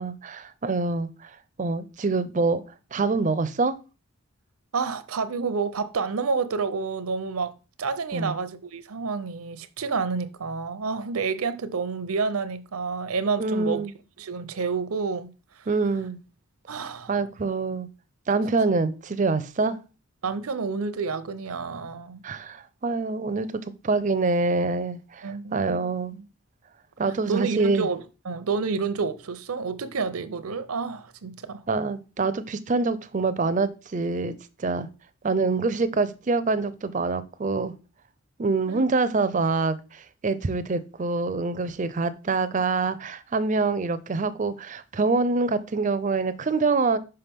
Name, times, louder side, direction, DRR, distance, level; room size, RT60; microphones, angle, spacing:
voice 1, 0.0-2.6 2.9-3.7 8.1-8.3 13.4-13.9 15.7-16.2 17.1-17.9 18.3-19.8 22.2-26.1 27.0-27.9 31.7-34.3 34.6-34.9 35.2-37.7 38.4-47.0, right 3 dB, 35° right, 0.4 m, -25 dB
voice 2, 4.7-13.8 14.2-15.3 15.6-15.7 16.7-17.1 20.2-22.2 25.2-26.2 27.3-31.6 38.7-38.9, right 4 dB, 80° right, 0.6 m, -29 dB
5.7 x 5.5 x 3.5 m
head